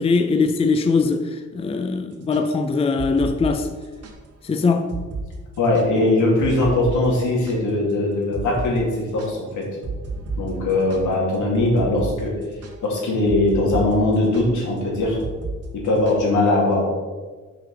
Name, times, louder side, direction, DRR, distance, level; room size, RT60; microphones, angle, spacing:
voice 1, 0.0-3.7 4.4-4.9, left 4 dB, 20° left, 0.5 m, -21 dB
sound 1, 2.1-4.2 4.5-4.6 4.9-5.3 5.5-7.9 8.3-8.7 9.0-16.3, right 3 dB, 55° right, 1.3 m, -33 dB
voice 2, 5.6-9.6 10.4-12.3 12.8-15.2 15.8-16.8, left 2 dB, 75° left, 2.4 m, -20 dB
6.6 x 5.0 x 4.7 m
cardioid pair, 90°, 30 cm